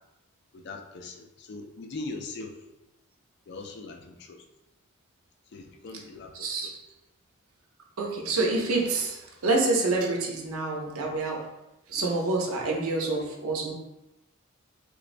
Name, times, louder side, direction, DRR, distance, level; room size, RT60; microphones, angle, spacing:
voice 1, 0.5-2.6 3.5-4.4 5.5-6.7 13.0-13.3, left 3 dB, 50° left, 4 dB, 0.4 m, -41 dB
voice 2, 6.3-6.7 8.0-11.4 11.9-13.7, right 3 dB, 80° right, 0 dB, 0.6 m, -27 dB
3.2 x 3.1 x 2.5 m, 0.95 s
head